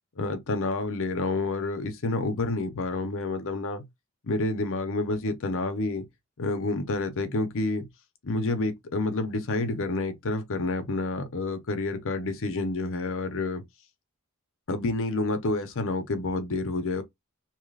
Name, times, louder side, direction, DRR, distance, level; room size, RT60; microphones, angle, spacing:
voice 1, 0.2-3.8 4.2-6.1 6.4-7.9 8.2-13.6 14.7-17.0, left 2 dB, 65° left, 0.8 m, -29 dB
2.9 x 2.4 x 3.2 m
head